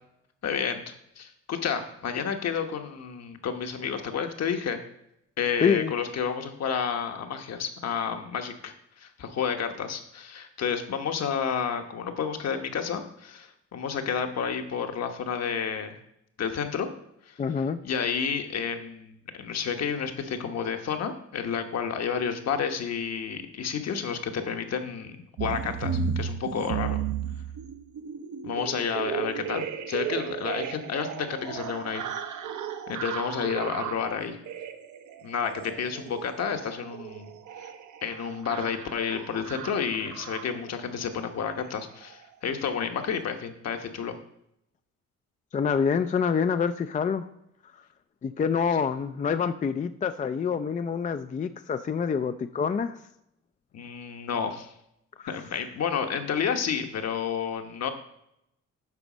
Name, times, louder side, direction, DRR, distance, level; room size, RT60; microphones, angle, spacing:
voice 1, 0.4-4.8 5.4-16.0 16.4-16.9 17.2-17.4 17.8-27.0 28.4-32.4 32.9-34.4 35.2-37.3 37.6-37.7 38.0-44.2 53.7-54.7 55.3-57.9, left 7 dB, 60° left, 6 dB, 1.2 m, -30 dB
voice 2, 5.6-5.9 17.4-17.8 45.5-47.3 48.2-53.0 55.2-55.3, left 6 dB, 25° left, 10 dB, 0.4 m, -26 dB
sound 1, 25.4-40.7 41.5-41.8 42.0-42.2 42.5-42.7 43.0-43.2, right 7 dB, 75° right, 0.9 m, -35 dB
9.7 x 4.0 x 6.1 m, 0.80 s
cardioid pair, 90°, 30 cm